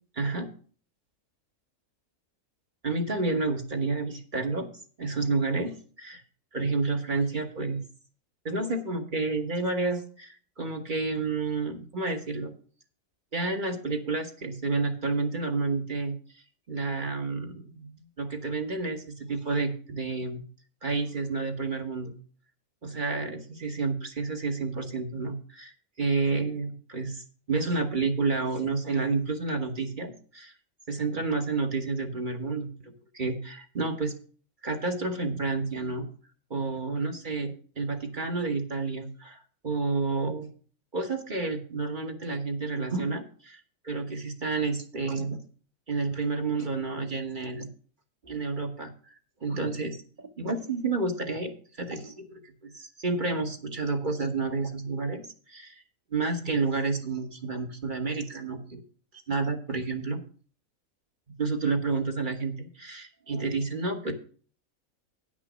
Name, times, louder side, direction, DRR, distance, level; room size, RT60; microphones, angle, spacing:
voice 1, 0.1-0.5 2.8-4.7 5.0-6.2 6.5-7.8 8.4-12.5 13.3-16.1 16.7-19.0 19.3-20.4 20.8-22.1 22.8-30.5 30.9-34.1 34.6-36.1 36.5-40.5 40.9-45.4 45.9-47.7 48.2-48.9 49.4-55.2 55.5-55.8 56.1-58.8 59.3-60.2 61.4-64.1, right 3 dB, 35° right, 5 dB, 1.3 m, -30 dB
9.9 x 6.1 x 6.1 m, 0.41 s
omnidirectional pair, 1.4 m